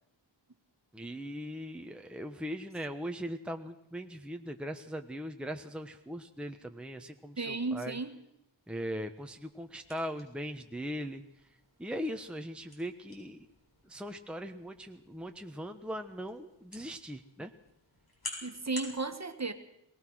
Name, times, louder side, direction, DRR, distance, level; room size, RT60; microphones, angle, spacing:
voice 1, 0.9-8.0 8.7-11.2 11.8-13.4 13.8-17.5, equal, ahead, 5 dB, 1.2 m, -40 dB
voice 2, 7.4-8.2 18.4-19.5, right 3 dB, 35° right, 8 dB, 1.8 m, -34 dB
sound 1, 9.2-19.0, left 2 dB, 50° left, 7.5 m, -50 dB
23.0 x 18.5 x 6.4 m, 0.78 s
wide cardioid pair, 55°, 48 cm